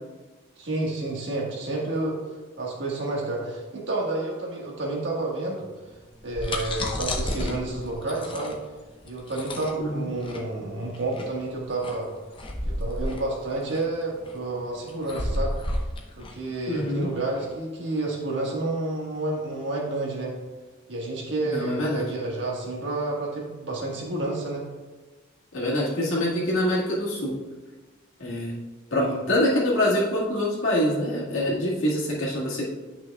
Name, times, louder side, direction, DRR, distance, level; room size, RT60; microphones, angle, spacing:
voice 1, 0.6-2.2 2.6-5.7 6.2-8.6 9.0-12.1 12.7-15.5 16.2-20.3 20.9-24.7 29.0-29.2, right 2 dB, 60° right, -2 dB, 1.6 m, -30 dB
sound 1, 6.1-17.5, left 1 dB, 25° left, 0.7 m, -32 dB
voice 2, 9.8-10.1 16.7-17.1 21.4-22.0 25.5-27.4 28.2-28.5 28.9-32.7, left 1 dB, 80° left, -5 dB, 1.8 m, -25 dB
9.6 x 5.9 x 2.3 m, 1.2 s
head